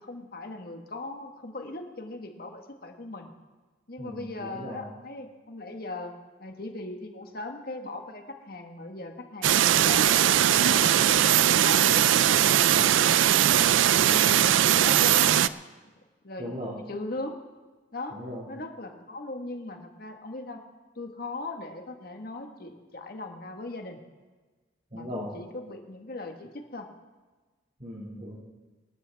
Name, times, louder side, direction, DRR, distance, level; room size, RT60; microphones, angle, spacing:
voice 1, 0.0-3.3 3.9-6.1 6.4-10.1 10.5-12.1 12.7-12.9 13.9-15.3 16.2-17.4 17.9-18.2 18.5-20.6 20.9-24.0 24.9-26.9, left 2 dB, 50° left, 4 dB, 1.5 m, -39 dB
voice 2, 4.0-4.9 13.5-13.8 16.4-16.8 18.1-18.5 24.9-25.4 27.8-28.4, equal, 35° right, -4 dB, 2.2 m, -38 dB
sound 1, 9.4-15.5, right 11 dB, 80° right, 0.4 m, -20 dB
24.5 x 13.0 x 3.5 m, 1.3 s
head